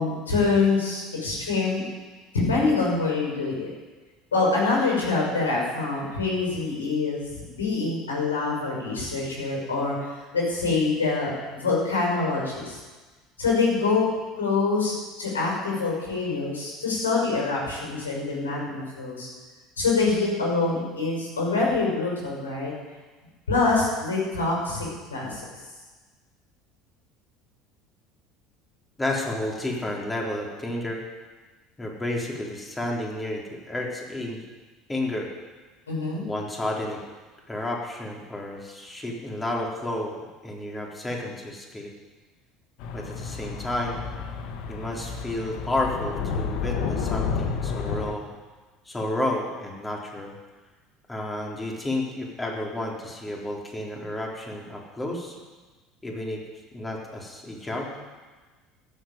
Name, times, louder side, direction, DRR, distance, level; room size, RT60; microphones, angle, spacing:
voice 1, 0.0-1.8 2.3-3.7 4.3-10.1 10.3-12.8 13.4-14.0 14.4-19.3 19.8-22.7 23.5-25.4 35.9-36.2, left 3 dB, 80° left, -3 dB, 6.1 m, -25 dB
voice 2, 29.0-31.0 31.8-34.4 34.9-35.3 36.2-37.0 37.5-40.1 40.4-41.9 42.9-44.0 44.7-48.2 48.9-50.4 51.1-55.4 56.0-56.4 56.7-57.9, left 1 dB, 15° left, -1 dB, 3.8 m, -31 dB
sound 1, 42.8-48.1, left 5 dB, 60° left, 1.4 m, -30 dB
14.5 x 8.2 x 9.4 m, 1.3 s
figure-of-eight pair, 65°, 0 cm